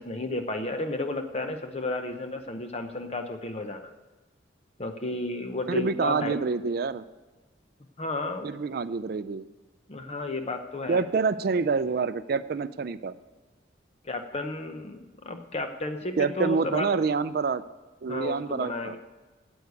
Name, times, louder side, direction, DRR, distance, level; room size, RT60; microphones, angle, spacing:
voice 1, 0.0-3.9 4.8-6.4 8.0-8.5 9.9-11.0 14.0-17.0 18.1-19.0, left 2 dB, 35° left, 6 dB, 0.7 m, -32 dB
voice 2, 5.7-7.0 8.4-9.4 10.9-13.2 16.2-17.6 18.0-19.0, right 5 dB, 55° right, 14 dB, 0.4 m, -27 dB
9.5 x 7.9 x 8.2 m, 1.2 s
head